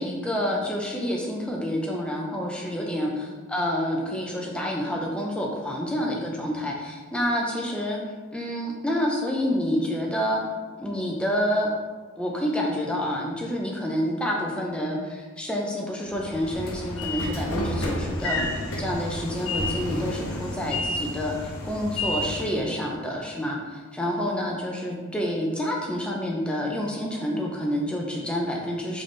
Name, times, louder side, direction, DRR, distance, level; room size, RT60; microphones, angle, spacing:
voice 1, 0.0-8.0 8.3-10.4 10.7-11.7 12.2-29.0, equal, 5° left, -2 dB, 0.5 m, -28 dB
Train / Sliding door, 16.1-22.6, left 1 dB, 80° left, 0.8 m, -30 dB
3.9 x 3.4 x 3.2 m, 1.4 s
head